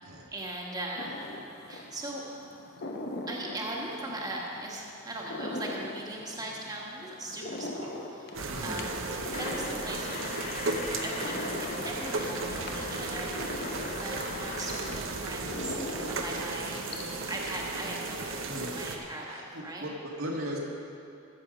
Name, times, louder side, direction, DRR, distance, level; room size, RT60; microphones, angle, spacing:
voice 1, 0.3-1.2 1.7-2.2 3.3-9.1 9.4-13.3 14.0-16.8 17.3-19.9, right 1 dB, 20° right, -3 dB, 1.4 m, -39 dB
sound 1, 1.0-17.6, left 1 dB, 55° left, 0.8 m, -42 dB
sound 2, 8.3-19.0, right 3 dB, 70° right, 0.9 m, -35 dB
voice 2, 8.5-8.8 11.8-11.9 18.5-18.7 19.3-20.6, equal, 85° right, -3 dB, 1.8 m, -38 dB
sound 3, 9.3-15.0, left 6 dB, 35° left, 0.3 m, -41 dB
14.5 x 6.8 x 5.1 m, 2.7 s
head